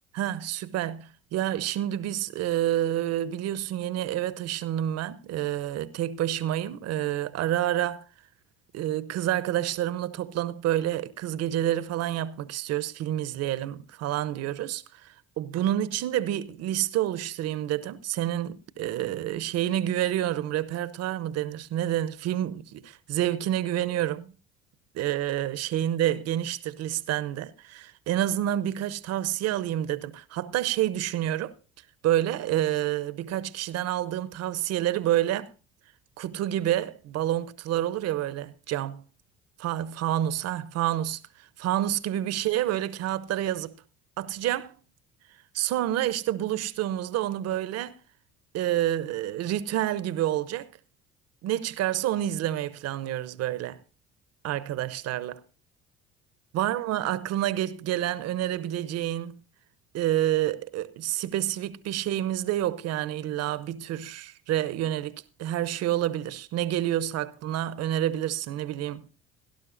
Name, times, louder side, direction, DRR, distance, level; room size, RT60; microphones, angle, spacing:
voice 1, 0.1-8.0 8.7-24.3 24.9-31.5 32.0-35.5 36.2-39.0 39.6-41.2 41.6-43.7 44.2-44.8 45.5-48.0 48.5-50.7 51.4-53.8 54.4-55.4 56.5-59.4 59.9-69.1, right 12 dB, 60° right, 0.8 m, -28 dB
17.5 x 11.5 x 2.6 m
hypercardioid pair, 65°, 30 cm